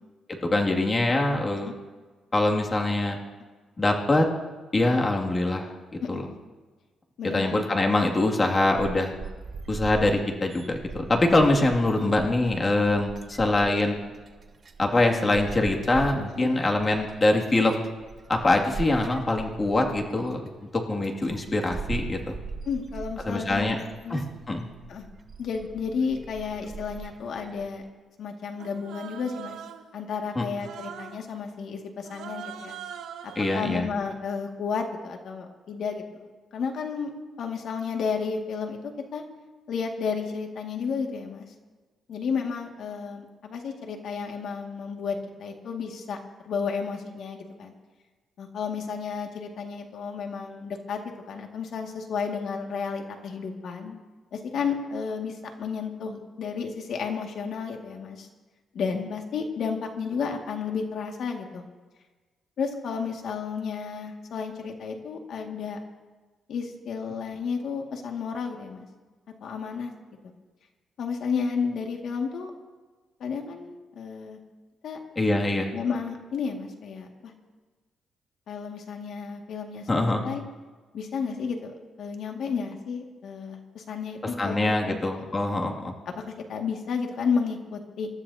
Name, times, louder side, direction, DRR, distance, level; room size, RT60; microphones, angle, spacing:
voice 1, 0.3-1.7 2.3-3.2 3.8-4.3 4.7-5.7 6.1-6.2 7.3-9.1 9.7-14.0 14.8-17.8 18.3-22.4 23.3-23.8 24.1-24.6 30.4-30.5 33.4-33.9 75.2-75.7 79.9-80.2 84.4-85.9, left 2 dB, 25° left, 0 dB, 2.4 m, -24 dB
voice 2, 6.0-6.4 7.2-7.6 16.3-16.5 22.7-24.2 24.9-25.1 25.4-27.8 28.2-29.6 29.9-32.8 33.2-37.1 37.4-39.2 39.7-41.5 42.1-46.2 46.4-47.7 48.4-51.0 51.3-54.0 54.3-58.3 58.7-61.6 62.6-65.8 66.5-68.9 69.4-69.9 70.2-70.3 71.0-72.5 73.2-74.4 74.8-75.0 75.7-77.3 78.5-80.4 80.9-81.7 82.0-84.5 84.8-85.6 86.1-88.1, left 5 dB, 70° left, 2 dB, 2.1 m, -32 dB
sound 1, 8.8-27.9, right 4 dB, 40° right, 1.2 m, -41 dB
Human voice, 28.6-29.9 30.6-31.2 32.0-33.8, right 8 dB, 85° right, 1.0 m, -41 dB
27.0 x 13.0 x 2.8 m, 1.3 s
cardioid pair, 100°, 0 cm